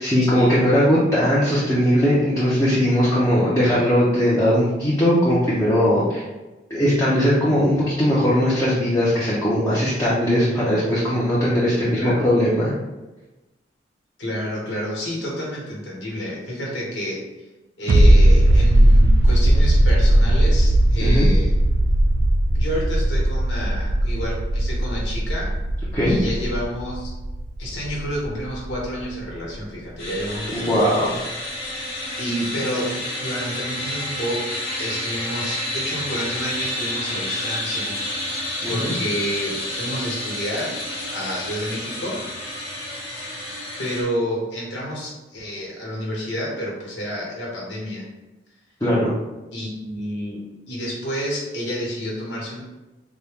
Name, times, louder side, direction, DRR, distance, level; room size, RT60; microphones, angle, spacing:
voice 1, 0.0-6.2 6.7-12.7 21.0-21.3 25.9-26.2 30.5-31.2 38.6-38.9 48.8-49.1, equal, 15° left, -9 dB, 0.6 m, -19 dB
voice 2, 11.9-12.2 14.2-17.2 17.8-21.5 22.5-25.5 26.1-27.1 27.6-30.7 32.2-38.0 38.3-40.8 41.1-42.2 43.8-48.1 49.5-52.6, equal, 85° left, -4 dB, 1.3 m, -29 dB
sound 1, 17.9-29.2 29.5-29.6, right 1 dB, 85° right, 0.4 m, -18 dB
sound 2, 30.0-44.0, left 1 dB, 30° left, 1.1 m, -30 dB
4.1 x 2.2 x 3.6 m, 1.1 s
head